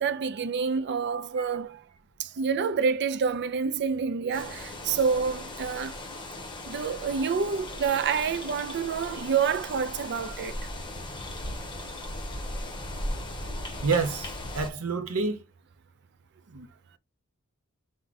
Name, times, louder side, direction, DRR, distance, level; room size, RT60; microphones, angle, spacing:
voice 1, 0.0-1.8 2.2-5.9 6.7-10.5, right 6 dB, 50° right, 0.4 m, -28 dB
sound 1, 4.3-14.7, left 1 dB, 20° left, 1.0 m, -37 dB
voice 2, 13.8-15.4 16.5-16.7, right 4 dB, 80° right, 0.9 m, -28 dB
4.6 x 2.2 x 4.0 m
head